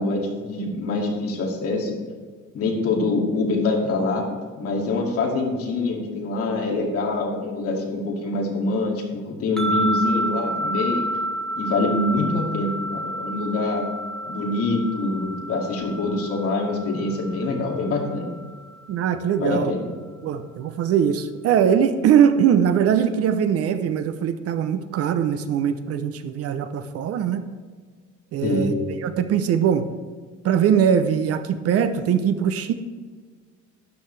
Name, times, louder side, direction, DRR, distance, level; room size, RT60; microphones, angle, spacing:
voice 1, 0.0-2.0 2.5-4.2 4.6-11.1 11.6-13.9 14.3-18.3 19.4-19.8 28.4-28.7, left 2 dB, 50° left, -1 dB, 2.3 m, -25 dB
sound 1, 9.6-18.8, equal, ahead, 0.8 m, -30 dB
voice 2, 18.9-19.7 20.2-27.4 28.3-28.7 29.0-29.9 30.4-32.7, right 8 dB, 50° right, 10 dB, 0.6 m, -21 dB
12.5 x 10.5 x 3.3 m, 1.6 s
cardioid pair, 170°, 31 cm